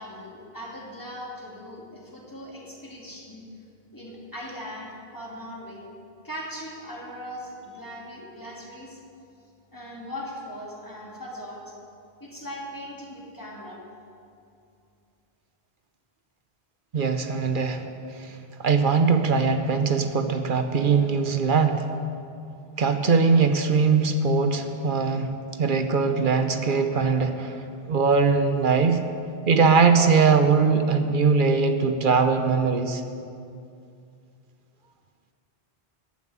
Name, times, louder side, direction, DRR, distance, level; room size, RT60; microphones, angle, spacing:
voice 1, 0.0-3.5 3.9-5.9 6.2-9.0 9.7-11.8 12.2-13.8, equal, 20° left, -4 dB, 2.4 m, -39 dB
voice 2, 16.9-17.8 18.2-21.9 22.8-25.3 25.6-27.6 27.9-29.0 29.5-33.0, right 5 dB, 55° right, 7 dB, 0.9 m, -21 dB
14.5 x 6.1 x 9.5 m, 2.5 s
omnidirectional pair, 1.1 m